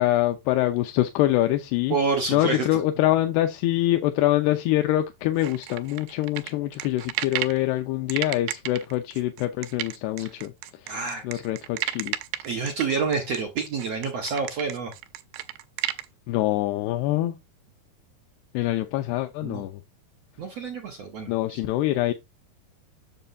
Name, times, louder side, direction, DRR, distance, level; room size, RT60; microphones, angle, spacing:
voice 1, 0.0-2.0 2.3-11.0 11.2-12.1 16.3-17.4 18.5-19.8 21.3-22.1, left 15 dB, 90° left, 2.8 m, -25 dB
voice 2, 1.9-2.7 10.2-10.3 10.9-11.4 12.4-14.9 19.4-19.6 20.4-21.6, right 4 dB, 65° right, 1.7 m, -28 dB
sound 1, 5.4-7.6 8.1-16.1, right 15 dB, 85° right, 2.8 m, -32 dB
7.7 x 6.9 x 2.6 m
omnidirectional pair, 4.6 m